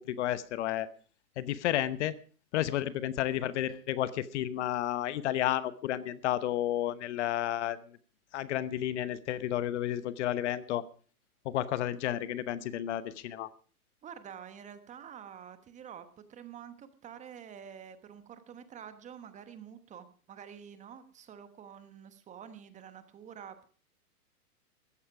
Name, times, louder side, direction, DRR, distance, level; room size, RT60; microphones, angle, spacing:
voice 1, 0.1-0.9 1.4-2.2 2.5-7.8 8.3-10.8 11.4-13.5, left 12 dB, 50° left, 16 dB, 1.1 m, -31 dB
voice 2, 14.0-23.6, right 8 dB, 15° right, 11 dB, 1.1 m, -48 dB
14.5 x 14.0 x 4.8 m, 0.40 s
hypercardioid pair, 135°, 45 cm